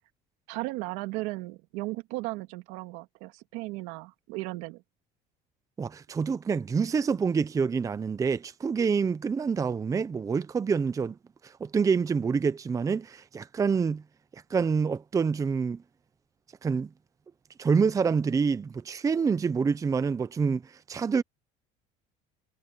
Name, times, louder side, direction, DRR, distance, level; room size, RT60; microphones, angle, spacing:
voice 1, 0.5-4.8, right 22 dB, 80° right, 2.3 m, -36 dB
voice 2, 5.8-11.2 11.4-14.0 14.3-15.8 16.6-16.9 17.6-21.2, right 5 dB, 20° right, 0.7 m, -27 dB
cardioid pair, 135°, 18 cm